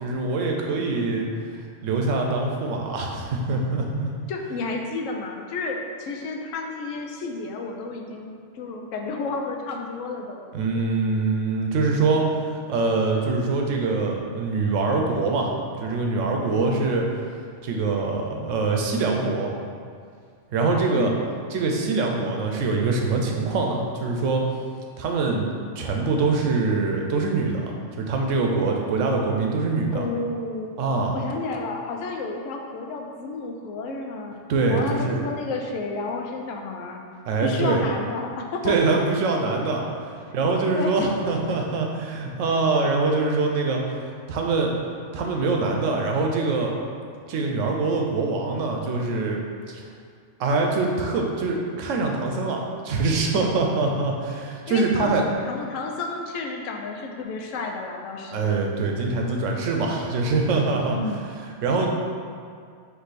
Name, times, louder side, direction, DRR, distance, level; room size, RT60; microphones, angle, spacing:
voice 1, 0.0-1.3 1.8-4.1 10.5-15.5 15.8-17.0 17.6-19.5 20.5-21.1 21.5-24.4 25.0-25.5 25.8-30.1 30.8-31.2 34.5-35.2 37.3-37.8 38.6-39.8 40.3-44.7 45.1-46.7 47.3-49.4 49.7-49.8 50.4-55.3 58.3-61.0 61.6-61.9, right 3 dB, 85° right, 1 dB, 1.0 m, -24 dB
voice 2, 4.3-10.4 16.5-17.0 20.9-21.3 29.9-30.7 31.1-34.4 34.7-37.0 37.4-38.8 40.7-41.1 54.7-55.2 55.5-58.5 60.9-61.3, left 3 dB, 90° left, 2 dB, 1.0 m, -31 dB
4.7 x 2.7 x 4.0 m, 2.2 s
omnidirectional pair, 1.3 m